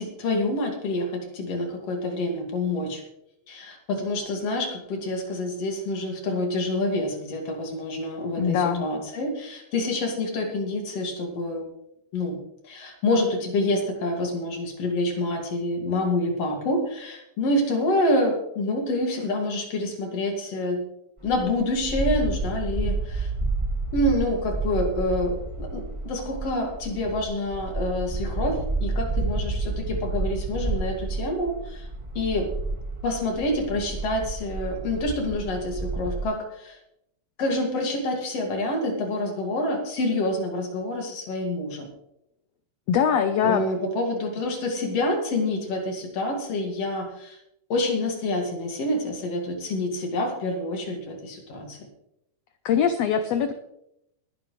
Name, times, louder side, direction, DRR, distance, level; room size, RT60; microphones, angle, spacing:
voice 1, 0.0-3.0 3.5-11.6 12.1-12.4 12.6-20.8 21.2-23.3 23.9-31.9 32.1-32.5 33.0-36.8 37.4-41.9 43.4-47.4 47.7-51.8, left 1 dB, 50° left, 2 dB, 3.0 m, -27 dB
voice 2, 8.4-8.8 42.9-43.6 52.6-53.5, left 7 dB, 90° left, 9 dB, 1.4 m, -22 dB
sound 1, 21.2-36.2, right 3 dB, 15° right, 1.0 m, -30 dB
20.5 x 10.5 x 3.2 m, 0.80 s
omnidirectional pair, 3.9 m